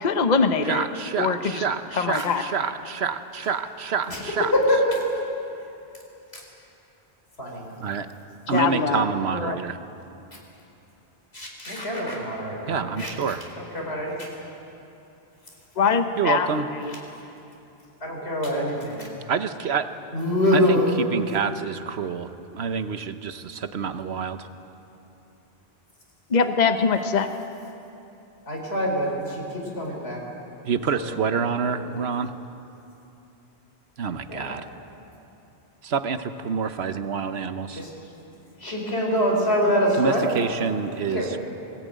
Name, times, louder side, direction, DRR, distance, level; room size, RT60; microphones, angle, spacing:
voice 1, 0.0-0.8 1.2-1.6 2.0-2.4 8.5-9.0 9.3-9.6 15.8-16.5 16.8-16.9 26.3-27.3, left 5 dB, 45° left, 8 dB, 1.0 m, -22 dB
voice 2, 0.6-4.5 7.8-8.1 8.5-9.8 12.7-13.4 16.2-16.7 19.3-19.9 20.5-24.5 30.6-32.3 34.0-34.6 35.8-37.8 40.0-41.4, right 6 dB, 85° right, 10 dB, 1.2 m, -27 dB
voice 3, 4.5-5.0 6.3-6.4 7.4-7.6 8.6-8.9 11.3-13.1 13.6-14.3 15.8-15.9 18.0-19.1 20.1-20.9 28.5-30.2 30.9-31.1 31.5-31.8 34.3-34.5 37.7-37.9 38.6-40.3 41.1-41.3, equal, 85° left, -1 dB, 4.7 m, -25 dB
20.5 x 18.0 x 9.3 m, 2.9 s
omnidirectional pair, 1.0 m